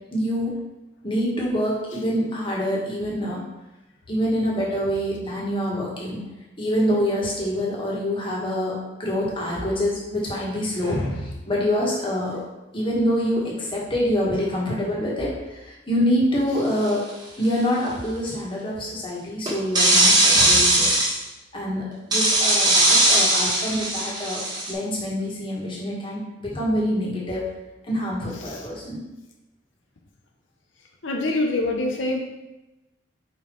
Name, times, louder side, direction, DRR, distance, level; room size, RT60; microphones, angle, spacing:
voice 1, 0.1-0.6 1.0-3.4 4.1-6.2 6.6-12.4 12.7-17.0 17.4-21.0 21.5-24.4 24.7-27.4 27.9-29.0, equal, 25° left, -4 dB, 1.6 m, -26 dB
sound 1, 16.8-17.1 19.5-21.2 22.1-24.7, right 1 dB, 20° right, 1.6 m, -19 dB
voice 2, 31.0-32.2, left 2 dB, 80° left, 1 dB, 0.8 m, -25 dB
5.4 x 4.5 x 4.5 m, 1.0 s
head